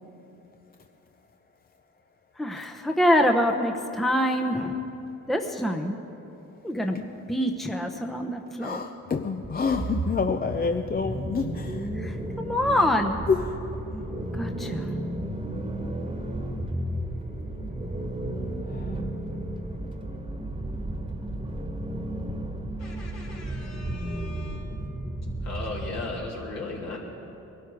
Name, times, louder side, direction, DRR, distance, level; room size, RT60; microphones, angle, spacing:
voice 1, 2.4-4.8 5.3-6.0 6.6-7.0 7.3-8.8 11.9-13.2 14.3-14.9, equal, ahead, 4 dB, 0.9 m, -25 dB
voice 2, 6.6-7.1 8.4-11.9 12.3-12.4 13.3-14.3 14.8-14.9 16.0-16.2 18.3-19.5, left 5 dB, 30° left, 6 dB, 0.6 m, -30 dB
sound 1, 9.4-26.3, right 1 dB, 15° right, 1.5 m, -33 dB
voice 3, 22.8-24.6 25.4-27.0, left 3 dB, 60° left, -3 dB, 3.3 m, -37 dB
21.5 x 12.5 x 4.8 m, 3.0 s
cardioid pair, 90°, 30 cm